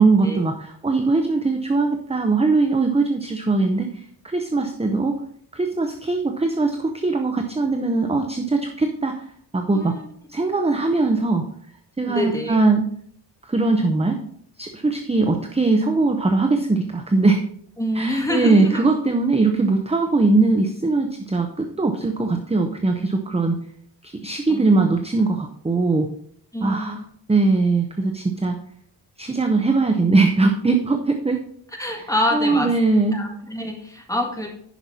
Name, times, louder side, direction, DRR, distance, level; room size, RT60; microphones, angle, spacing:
voice 1, 0.0-5.1 5.5-9.2 9.5-9.9 10.3-11.4 12.0-12.9 13.5-14.2 14.6-17.4 18.0-23.6 24.0-26.1 26.6-27.0 27.3-28.6 29.2-31.4 32.3-33.2, right 3 dB, 15° right, 5 dB, 0.6 m, -20 dB
voice 2, 9.7-10.0 12.1-12.6 17.8-18.8 24.5-24.9 26.5-27.0 31.8-32.8 33.1-34.5, left 1 dB, 10° left, 0 dB, 1.8 m, -26 dB
10.0 x 5.8 x 4.1 m, 0.65 s
wide cardioid pair, 125°, 43 cm